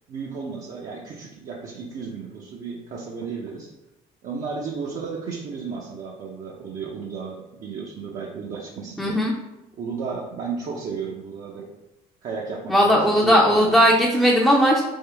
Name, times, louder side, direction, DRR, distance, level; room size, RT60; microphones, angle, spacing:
voice 1, 0.1-3.7 4.2-9.2 9.8-11.7 12.2-13.9, right 5 dB, 55° right, -3 dB, 0.6 m, -33 dB
voice 2, 9.0-9.3 12.7-14.8, equal, 5° left, -3 dB, 0.5 m, -17 dB
3.6 x 3.5 x 3.4 m, 0.94 s
cardioid pair, 110°, 17 cm